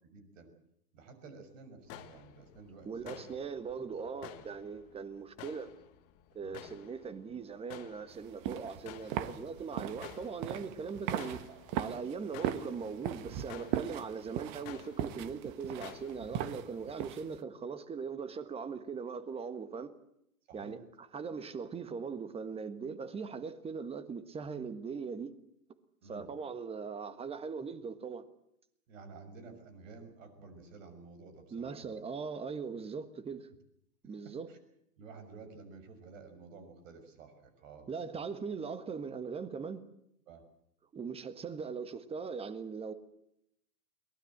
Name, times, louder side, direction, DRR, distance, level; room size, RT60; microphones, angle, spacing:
voice 1, 0.0-0.5 0.9-3.4 4.2-4.4 6.4-6.8 11.5-11.6 20.5-20.8 23.3-23.5 26.0-26.3 28.9-32.0 34.0-34.6 35.0-38.3 40.3-40.4, right 4 dB, 50° right, 6.3 m, -52 dB
sound 1, 1.9-16.9, left 13 dB, 30° left, 1.7 m, -53 dB
voice 2, 2.8-5.7 6.3-11.4 11.7-19.9 20.5-25.3 26.1-28.2 31.5-33.5 34.0-34.5 37.9-39.8 40.9-42.9, right 5 dB, 10° right, 1.4 m, -40 dB
sound 2, 8.1-17.4, right 11 dB, 35° right, 1.4 m, -39 dB
22.5 x 19.5 x 8.0 m
hypercardioid pair, 120°, 47 cm